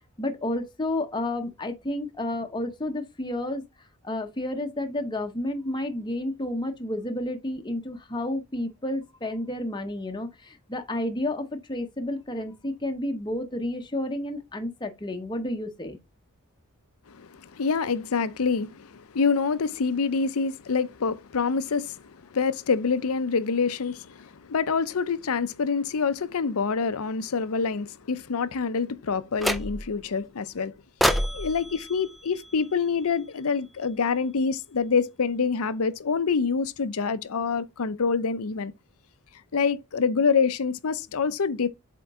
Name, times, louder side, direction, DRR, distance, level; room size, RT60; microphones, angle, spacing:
voice 1, 0.2-3.6 4.0-16.0, left 1 dB, 20° left, 0.8 m, -31 dB
voice 2, 17.1-30.7 31.0-38.7 39.5-41.7, left 5 dB, 70° left, 0.6 m, -26 dB
sound 1, 29.4-30.0 31.0-33.2, equal, ahead, 0.3 m, -29 dB
7.9 x 3.8 x 3.6 m
head